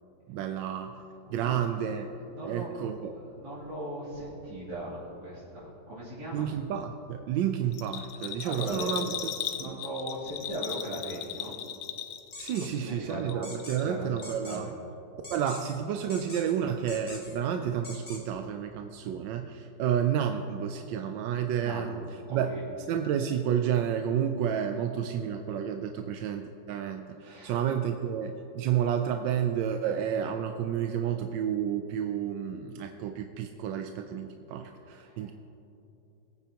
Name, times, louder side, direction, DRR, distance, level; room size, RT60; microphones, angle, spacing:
voice 1, 0.3-1.0 1.3-2.1 2.4-3.2 6.3-9.2 9.6-9.8 12.4-14.7 15.3-22.0 22.3-22.5 22.9-35.3, right 9 dB, 90° right, 6 dB, 1.3 m, -30 dB
voice 2, 1.2-1.5 2.3-2.7 3.1-6.5 8.4-9.0 9.5-11.6 12.6-13.5 13.8-14.1 14.4-14.7 21.6-22.6 27.2-27.6 34.9-35.3, right 1 dB, 65° right, -11 dB, 3.6 m, -39 dB
Bell, 7.7-12.8 13.1-13.9 14.2-14.3, left 10 dB, 90° left, 1.4 m, -37 dB
sound 1, 12.3-12.7 13.4-13.8 14.2-14.6 15.2-15.8 16.1-16.5 16.9-17.4 17.8-18.2, left 2 dB, 40° left, 1.8 m, -44 dB
21.0 x 9.0 x 2.9 m, 3.0 s
omnidirectional pair, 1.9 m